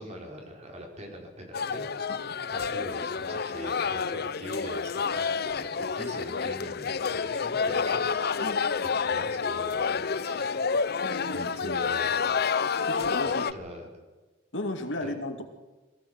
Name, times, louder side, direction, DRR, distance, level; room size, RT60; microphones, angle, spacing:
voice 1, 0.0-8.4 9.0-10.6 11.3-12.2 13.2-13.9 15.0-15.1, equal, 35° right, 2 dB, 4.5 m, -42 dB
sound 1, 1.5-13.5, left 5 dB, 55° left, 0.7 m, -29 dB
voice 2, 11.0-11.9 12.9-13.4 14.5-15.4, left 1 dB, 75° left, 5 dB, 2.4 m, -35 dB
22.0 x 15.5 x 8.0 m, 1.2 s
head